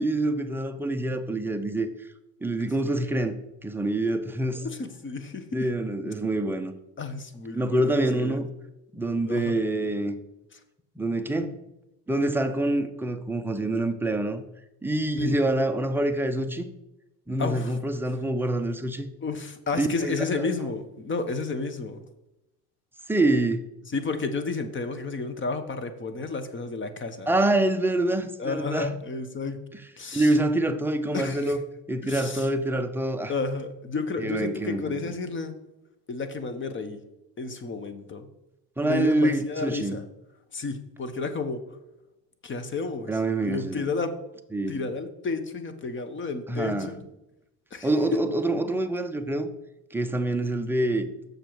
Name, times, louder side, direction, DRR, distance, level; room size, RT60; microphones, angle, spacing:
voice 1, 0.0-2.1 2.4-3.3 3.6-4.6 5.5-6.7 7.5-8.5 8.9-10.2 11.0-11.6 12.1-14.4 14.8-16.7 17.3-19.1 19.7-20.2 23.1-23.6 27.3-28.9 30.1-31.6 31.9-33.3 34.2-35.0 38.8-40.0 43.1-43.9 44.5-44.8 46.5-46.9 47.8-49.5 49.9-51.1, right 1 dB, 5° right, 0.5 m, -26 dB
voice 2, 4.6-5.7 7.0-8.4 9.3-9.6 10.5-10.6 15.2-15.3 17.4-17.8 19.2-22.0 23.9-27.3 28.4-29.6 30.0-30.3 31.1-31.6 32.0-32.5 33.3-35.5 36.1-37.0 37.4-38.3 38.8-40.0 40.5-41.6 42.4-44.2 44.7-47.0 47.7-48.2, left 4 dB, 25° left, 0.9 m, -31 dB
6.7 x 6.5 x 4.6 m
supercardioid pair, 100°, 47 cm